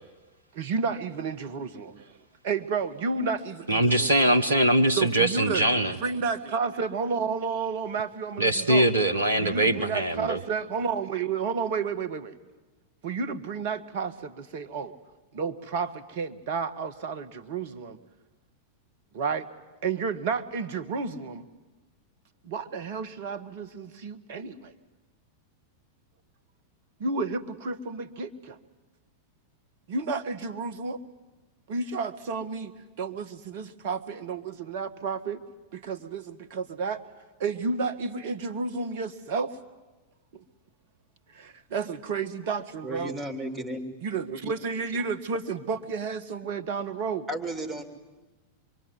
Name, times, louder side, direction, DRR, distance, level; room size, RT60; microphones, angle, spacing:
voice 1, 0.5-2.1 2.4-4.1 4.9-8.9 9.4-12.3 13.0-14.9 15.3-18.0 19.1-19.5 19.8-21.4 22.4-24.7 27.0-28.6 29.9-31.0 31.7-32.7 33.0-35.4 35.7-37.0 37.4-39.5 40.3-40.4 41.3-43.1 44.0-47.3, right 5 dB, 50° right, 13 dB, 1.5 m, -31 dB
voice 2, 3.7-5.9 8.4-10.4, right 1 dB, 70° right, 8 dB, 1.2 m, -22 dB
voice 3, 42.8-43.8 47.3-47.8, right 1 dB, 20° right, 9 dB, 3.1 m, -33 dB
26.0 x 23.0 x 9.6 m, 1.2 s
figure-of-eight pair, 90°, 0 cm